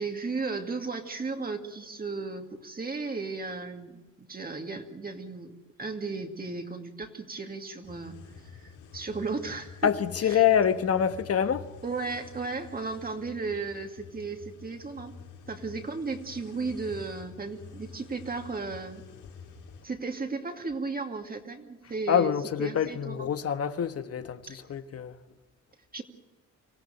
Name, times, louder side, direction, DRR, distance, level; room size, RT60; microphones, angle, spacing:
voice 1, 0.0-5.5 5.8-9.9 10.2-10.4 11.8-15.2 15.5-19.0 19.8-22.3 22.6-23.3 24.5-24.6 25.9-26.0, right 4 dB, 30° right, 2.4 m, -35 dB
sound 1, 7.8-19.8, left 6 dB, 90° left, 5.9 m, -48 dB
voice 2, 9.8-11.7 22.1-25.2, left 8 dB, 50° left, 1.3 m, -26 dB
25.5 x 15.5 x 9.1 m
cardioid pair, 90°, 30 cm